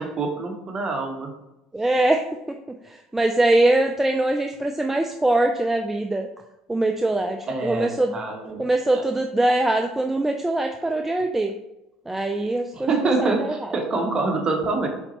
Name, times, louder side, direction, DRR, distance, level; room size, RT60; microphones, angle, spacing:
voice 1, 0.0-1.3 7.5-8.6 8.9-9.0 12.7-14.9, right 3 dB, 30° right, 3 dB, 1.1 m, -25 dB
voice 2, 1.7-2.2 2.9-6.3 6.7-8.1 8.6-11.5 12.1-13.5, right 2 dB, 10° right, 4 dB, 0.4 m, -22 dB
4.3 x 4.0 x 2.9 m, 0.91 s
hypercardioid pair, 75°, 3 cm